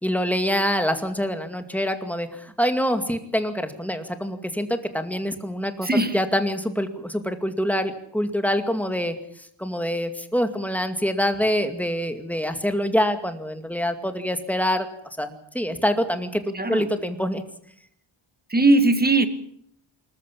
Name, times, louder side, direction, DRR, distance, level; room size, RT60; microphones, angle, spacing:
voice 1, 0.0-9.2 9.6-14.9 15.2-17.4, equal, 5° left, 7 dB, 2.3 m, -25 dB
voice 2, 5.8-6.2 16.5-16.9 18.5-19.3, right 2 dB, 20° right, 10 dB, 2.0 m, -19 dB
26.0 x 14.5 x 8.6 m, 0.69 s
wide cardioid pair, 135°, 49 cm